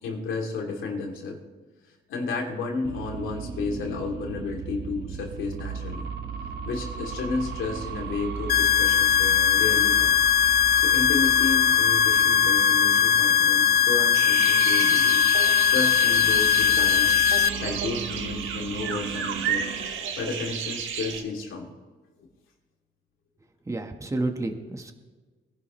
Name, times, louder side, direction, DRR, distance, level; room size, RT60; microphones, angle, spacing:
voice 1, 0.0-1.4 2.1-6.1 6.6-10.1 10.8-15.3 15.7-17.2 17.6-19.6 20.2-21.7, left 4 dB, 80° left, 0 dB, 2.9 m, -32 dB
sound 1, 2.8-19.9, right 5 dB, 55° right, 1.7 m, -35 dB
sound 2, 8.5-17.5, left 10 dB, 50° left, 0.4 m, -20 dB
sound 3, 14.1-21.2, right 7 dB, 80° right, 1.5 m, -32 dB
voice 2, 23.7-24.9, right 2 dB, 15° right, 5 dB, 1.3 m, -30 dB
22.0 x 11.0 x 3.2 m, 1.4 s
cardioid pair, 90°, 20 cm